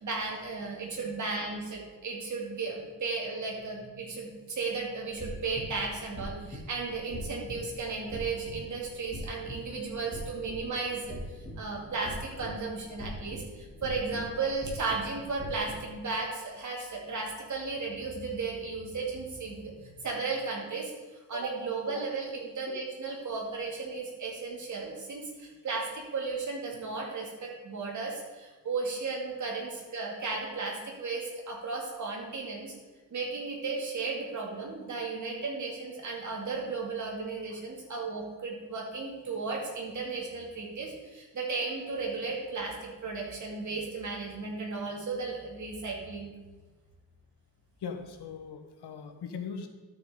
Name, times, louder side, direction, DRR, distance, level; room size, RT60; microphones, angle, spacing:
voice 1, 0.0-20.9 21.3-32.7 33.1-46.3, right 4 dB, 45° right, -2 dB, 2.3 m, -35 dB
sound 1, 5.0-15.9, equal, 15° left, 2.3 m, -43 dB
voice 2, 47.8-49.7, left 6 dB, 75° left, 6 dB, 1.1 m, -40 dB
12.0 x 6.9 x 3.8 m, 1.3 s
wide cardioid pair, 165°, 40 cm